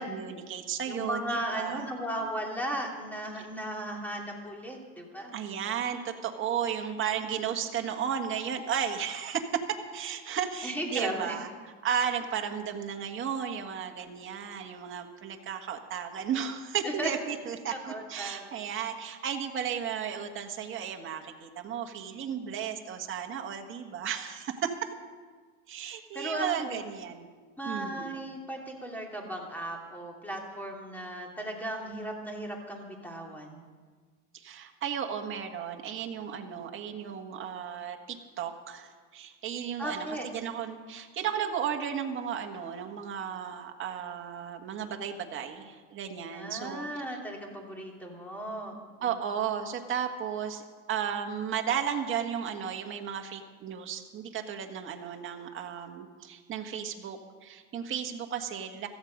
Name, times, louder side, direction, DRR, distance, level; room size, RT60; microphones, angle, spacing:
voice 1, 0.1-1.9 5.3-9.4 9.9-24.7 25.7-27.3 27.6-28.1 34.3-46.9 49.0-58.9, right 8 dB, 35° right, 4 dB, 1.7 m, -34 dB
voice 2, 0.9-5.3 10.6-11.4 16.8-17.1 17.7-18.7 25.8-26.8 27.6-33.6 39.8-40.3 46.3-49.1, right 1 dB, 5° left, 0 dB, 3.0 m, -36 dB
17.0 x 14.0 x 5.3 m, 1.5 s
supercardioid pair, 125°, 34 cm